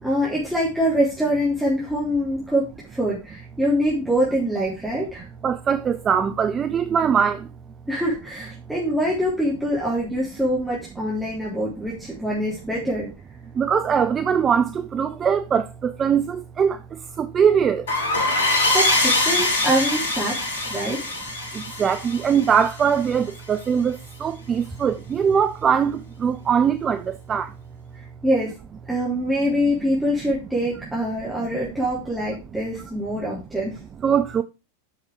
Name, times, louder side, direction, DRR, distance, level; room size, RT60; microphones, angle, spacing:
voice 1, 0.0-5.3 7.9-13.1 18.2-21.0 28.2-28.6 28.9-33.8, equal, ahead, 3.5 m, -24 dB
voice 2, 5.4-7.4 13.6-16.8 17.2-17.8 21.8-27.5 34.0-34.4, right 7 dB, 25° right, 0.6 m, -21 dB
sound 1, 17.9-23.2, left 2 dB, 60° left, 3.0 m, -23 dB
8.6 x 6.5 x 4.9 m
figure-of-eight pair, 90°, 0 cm